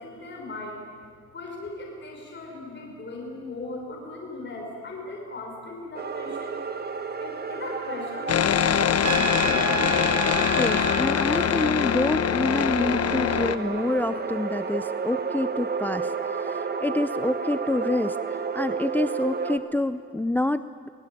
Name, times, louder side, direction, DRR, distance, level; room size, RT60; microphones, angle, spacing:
voice 1, 0.0-6.6 7.2-10.0, left 2 dB, 35° left, -1 dB, 5.5 m, -38 dB
sound 1, 5.9-19.6, right 5 dB, 35° right, 1.8 m, -32 dB
sound 2, 8.3-13.5, left 9 dB, 55° left, 1.1 m, -23 dB
Trumpet, 9.0-11.0, right 7 dB, 65° right, 1.4 m, -29 dB
voice 2, 10.6-20.9, left 2 dB, 5° left, 13 dB, 0.5 m, -27 dB
23.5 x 19.0 x 9.2 m, 2.2 s
cardioid pair, 90°, 30 cm